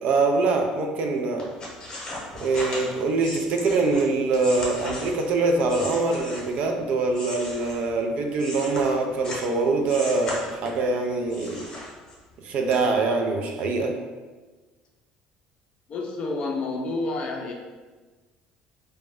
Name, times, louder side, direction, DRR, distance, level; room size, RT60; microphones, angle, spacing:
voice 1, 0.0-1.5 2.4-11.6 12.4-14.0, right 3 dB, 60° right, 3 dB, 0.4 m, -24 dB
sound 1, 1.4-6.7 7.1-9.5 9.9-10.9 11.3-12.3 12.7-12.8, left 1 dB, 30° left, 0.9 m, -37 dB
voice 2, 15.9-17.5, left 3 dB, 45° left, 1 dB, 0.4 m, -29 dB
2.5 x 2.1 x 3.3 m, 1.3 s
cardioid pair, 125°, 3 cm